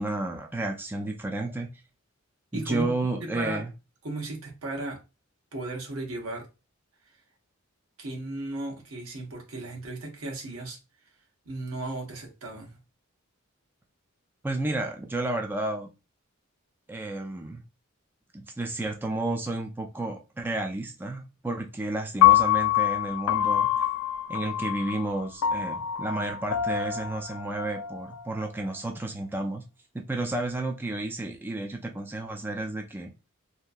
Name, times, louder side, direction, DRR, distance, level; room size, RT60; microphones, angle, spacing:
voice 1, 0.0-1.7 2.5-3.7 14.4-15.9 16.9-17.6 18.3-23.7 24.3-29.6 29.9-33.1, right 2 dB, 10° right, 0.3 m, -31 dB
voice 2, 2.5-2.9 3.2-3.7 4.0-5.0 5.5-6.5 7.1-7.2 8.0-10.8 11.5-12.8, right 2 dB, 80° right, 0.9 m, -35 dB
Piano, 22.2-28.4, left 12 dB, 80° left, 0.3 m, -25 dB
2.8 x 2.5 x 2.3 m
head